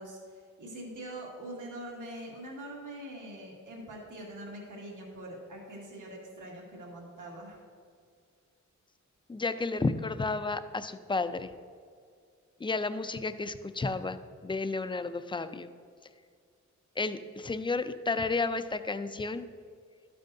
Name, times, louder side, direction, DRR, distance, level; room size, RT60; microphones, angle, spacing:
voice 1, 0.0-7.6, right 1 dB, 80° right, -3 dB, 2.0 m, -43 dB
voice 2, 9.3-11.5 12.6-15.7 17.0-19.5, left 3 dB, 15° left, 11 dB, 0.3 m, -32 dB
12.0 x 9.1 x 2.6 m, 2.2 s
wide cardioid pair, 115°, 30 cm